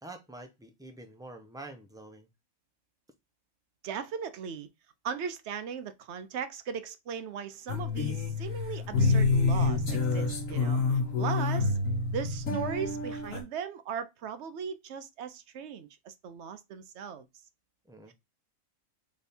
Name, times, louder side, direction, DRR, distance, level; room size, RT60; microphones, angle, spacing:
voice 1, 0.0-2.3 10.5-10.7 17.9-18.1, right 2 dB, 5° right, 0.4 m, -47 dB
voice 2, 3.8-4.7 5.0-10.8 11.2-11.8 12.1-17.2 18.1-18.2, right 7 dB, 65° right, 0.9 m, -38 dB
sound 1, 7.7-13.4, left 3 dB, 75° left, 1.4 m, -28 dB
3.6 x 3.4 x 4.1 m
omnidirectional pair, 1.4 m